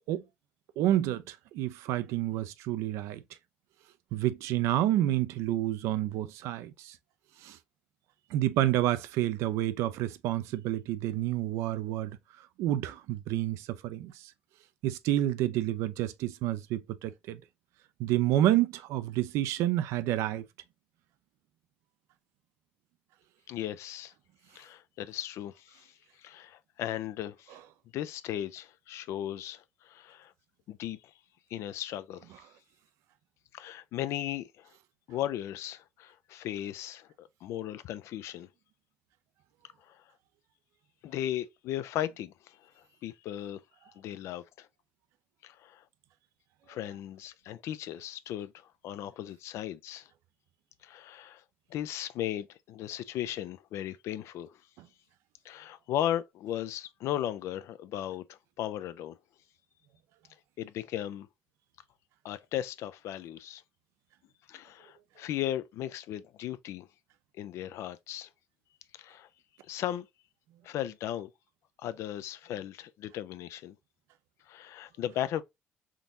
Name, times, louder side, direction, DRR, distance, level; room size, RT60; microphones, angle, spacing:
voice 1, 0.8-3.2 4.1-7.0 7.4-7.6 8.3-12.2 12.6-14.3 14.8-17.4 18.0-20.4, right 13 dB, 80° right, 0.4 m, -29 dB
voice 2, 23.5-24.1 24.5-25.9 26.2-27.6 27.9-30.3 30.7-31.0 31.5-32.4 33.5-34.7 35.1-38.5 39.9-40.0 41.0-42.7 43.0-43.6 44.0-44.7 45.4-45.8 46.7-50.1 50.8-51.4 51.7-54.6 55.4-59.2 60.6-61.3 62.2-63.6 64.5-66.9 67.3-68.3 68.9-69.3 69.7-70.1 70.6-71.3 71.8-73.8 74.5-75.4, left 12 dB, 75° left, 0.4 m, -36 dB
3.6 x 2.9 x 2.5 m
supercardioid pair, 70°, 5 cm